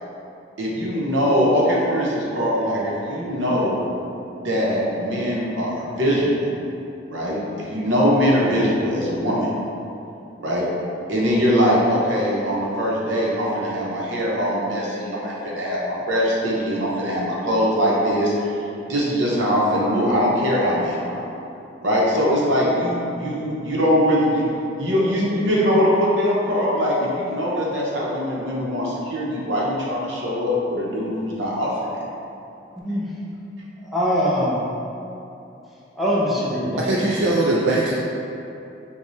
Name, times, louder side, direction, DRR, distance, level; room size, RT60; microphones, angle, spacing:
voice 1, 0.6-3.8 4.4-6.5 7.1-7.4 7.7-9.5 10.4-10.7 11.1-21.2 21.8-24.4 24.8-31.9, equal, 90° right, -5 dB, 0.9 m, -22 dB
voice 2, 32.8-33.1 33.8-34.6 36.0-37.2, equal, ahead, -8 dB, 0.5 m, -23 dB
voice 3, 36.8-37.9, right 2 dB, 70° right, -4 dB, 0.3 m, -20 dB
5.3 x 2.3 x 3.1 m, 2.8 s
head